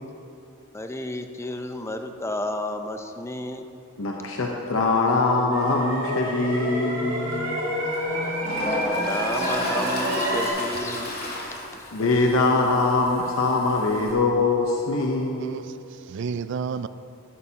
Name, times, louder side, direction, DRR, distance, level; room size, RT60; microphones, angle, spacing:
voice 1, 0.7-3.7 8.6-11.2 11.5-12.1, left 1 dB, 15° left, 0.5 m, -32 dB
voice 2, 4.0-7.5 11.9-15.6, left 3 dB, 75° left, 0.8 m, -23 dB
sound 1, 5.5-10.5, equal, 85° right, 2.1 m, -28 dB
Toilet flush, 7.3-7.4 7.9-14.1, left 1 dB, 45° left, 1.9 m, -35 dB
voice 3, 15.4-16.9, right 6 dB, 55° right, 0.3 m, -31 dB
12.5 x 11.5 x 2.9 m
head